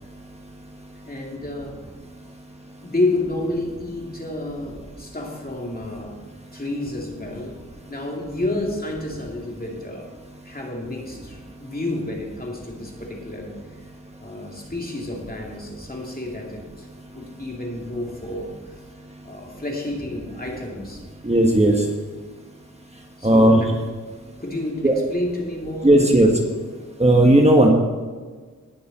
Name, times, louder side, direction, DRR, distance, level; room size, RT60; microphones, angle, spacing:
voice 1, 1.0-1.7 2.8-6.1 6.5-7.6 7.9-10.1 10.4-13.5 14.2-16.9 17.1-18.8 19.2-21.0 21.6-21.7 23.2-23.8 24.4-26.2, left 2 dB, 30° left, -1 dB, 2.6 m, -30 dB
voice 2, 21.2-21.8 23.2-23.6 24.8-24.9 25.8-26.3 27.0-27.7, right 1 dB, 20° right, 1 dB, 1.5 m, -14 dB
18.5 x 6.9 x 4.3 m, 1.5 s
wide cardioid pair, 70°, 31 cm